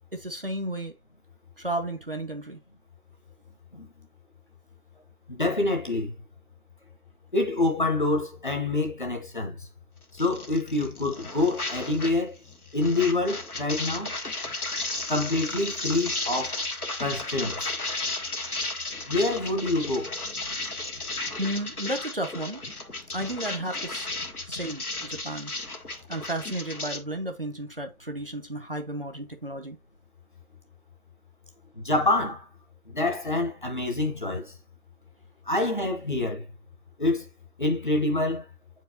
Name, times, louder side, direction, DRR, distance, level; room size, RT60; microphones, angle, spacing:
voice 1, 0.1-0.9 1.6-2.6 21.4-22.6 23.1-24.1 24.5-25.5 26.1-29.8, right 1 dB, 40° right, 0.7 m, -33 dB
voice 2, 5.3-6.1 7.3-9.7 10.1-12.4 12.7-14.2 15.1-16.6 17.0-17.7 19.0-20.2 31.7-32.5 32.9-34.5 35.5-36.4 37.0-37.3 37.6-38.5, left 2 dB, 35° left, 0.9 m, -26 dB
sound 1, 10.1-12.2 12.5-27.0, left 2 dB, 80° left, 1.5 m, -34 dB
7.4 x 4.6 x 2.7 m
figure-of-eight pair, 160°, 43 cm